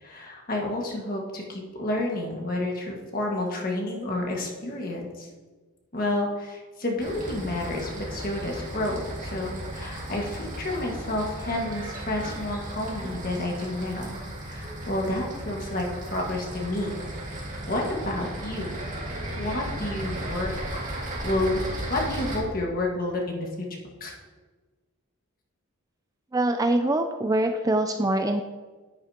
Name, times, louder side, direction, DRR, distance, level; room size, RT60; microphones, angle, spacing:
voice 1, 0.0-5.3 5.9-14.2 14.5-17.0 17.7-18.8 19.4-20.5 20.9-23.5 24.0-24.2, left 1 dB, 40° left, 0 dB, 1.6 m, -30 dB
sound 1, 7.0-22.4, right 1 dB, 35° right, 2.0 m, -35 dB
voice 2, 26.3-28.4, right 1 dB, 15° right, 6 dB, 0.3 m, -24 dB
10.0 x 9.2 x 2.9 m, 1.4 s
head